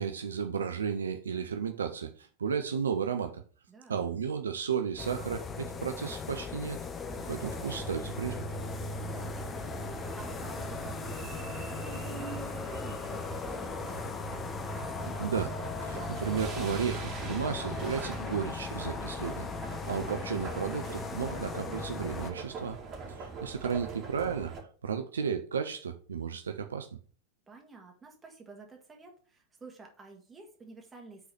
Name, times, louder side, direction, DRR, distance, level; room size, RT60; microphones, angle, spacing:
voice 1, 0.0-3.4 3.9-6.8 7.3-8.5 15.0-15.6 15.8-19.5 19.9-22.8 23.2-24.5 24.8-26.9, right 7 dB, 70° right, 0.5 m, -33 dB
voice 2, 3.7-4.0 9.0-14.2 23.2-23.8 27.5-31.3, right 3 dB, 15° right, 1.9 m, -51 dB
sound 1, 5.0-22.3, left 4 dB, 20° left, 0.7 m, -38 dB
sound 2, 7.0-24.6, right 5 dB, 30° right, 2.2 m, -43 dB
5.7 x 3.9 x 5.8 m
figure-of-eight pair, 90°, 0 cm